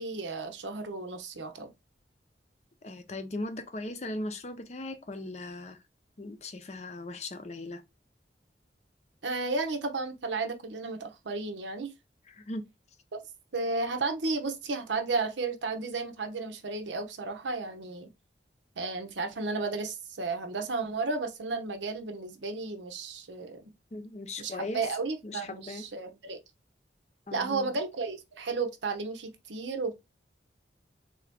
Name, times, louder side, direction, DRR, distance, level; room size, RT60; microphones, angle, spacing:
voice 1, 0.0-1.7 9.2-11.9 13.1-13.2 13.5-18.1 18.8-23.7 24.4-26.4 27.3-29.9, right 3 dB, 90° right, 0.8 m, -33 dB
voice 2, 2.8-5.8 6.2-7.8 12.3-12.7 23.9-24.9 25.2-25.9 27.3-27.8, left 2 dB, 40° left, 0.5 m, -38 dB
3.7 x 2.7 x 3.4 m
head